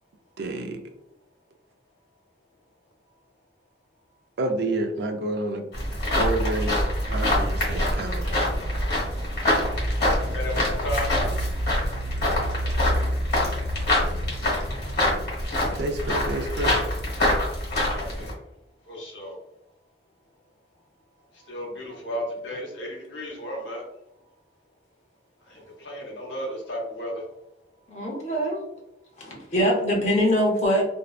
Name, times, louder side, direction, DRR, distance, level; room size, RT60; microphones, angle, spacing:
voice 1, 0.4-0.8 4.4-5.6 6.2-8.4 15.8-16.8, right 2 dB, 60° right, 5 dB, 0.4 m, -29 dB
sound 1, 5.7-18.3, left 1 dB, 60° left, 1.1 m, -25 dB
voice 2, 10.3-11.1 17.9-18.3 18.9-19.3 21.5-23.8 25.5-27.2, equal, 80° left, -2 dB, 0.8 m, -33 dB
voice 3, 27.9-28.6 29.2-30.9, equal, 35° left, -1 dB, 0.6 m, -23 dB
2.6 x 2.1 x 2.4 m, 0.84 s
head